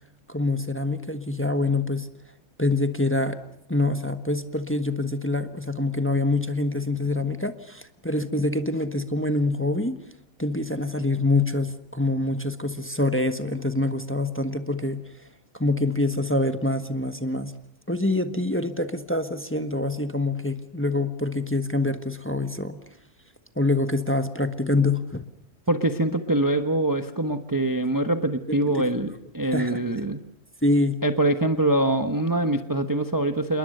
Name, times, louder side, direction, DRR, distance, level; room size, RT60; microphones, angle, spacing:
voice 1, 0.3-2.1 2.6-3.4 3.7-10.0 10.4-15.0 15.5-17.5 17.9-22.8 23.5-25.3 28.7-28.9 29.5-29.8 30.6-31.0, left 2 dB, 10° left, 9 dB, 1.2 m, -25 dB
voice 2, 25.7-30.2 31.0-33.6, right 1 dB, 15° right, 8 dB, 1.0 m, -24 dB
28.5 x 21.5 x 6.7 m, 0.75 s
omnidirectional pair, 1.5 m